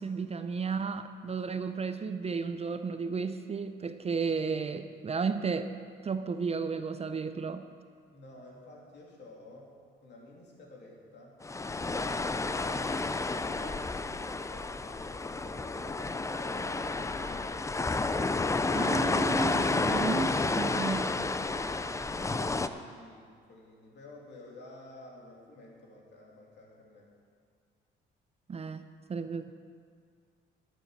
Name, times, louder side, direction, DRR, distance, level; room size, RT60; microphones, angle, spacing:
voice 1, 0.0-5.7 6.0-7.6 18.7-21.1 28.5-28.8 29.1-29.5, right 5 dB, 30° right, 10 dB, 0.5 m, -33 dB
voice 2, 8.1-9.7 10.0-11.4 12.0-17.8 22.4-27.1, left 2 dB, 60° left, -2 dB, 2.8 m, -51 dB
sound 1, 11.4-22.7, left 3 dB, 15° left, 0.5 m, -31 dB
12.0 x 7.6 x 6.7 m, 2.1 s
cardioid pair, 90°, 20 cm